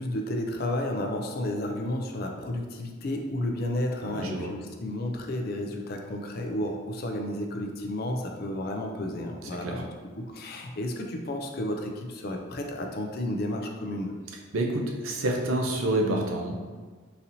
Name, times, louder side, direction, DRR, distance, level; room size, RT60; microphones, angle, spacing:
voice 1, 0.0-9.9 10.2-14.1, left 1 dB, 50° left, 3 dB, 0.4 m, -32 dB
voice 2, 4.1-4.5 9.6-9.8 14.5-16.5, right 1 dB, 90° right, 1 dB, 0.6 m, -28 dB
4.0 x 2.8 x 2.6 m, 1.4 s
head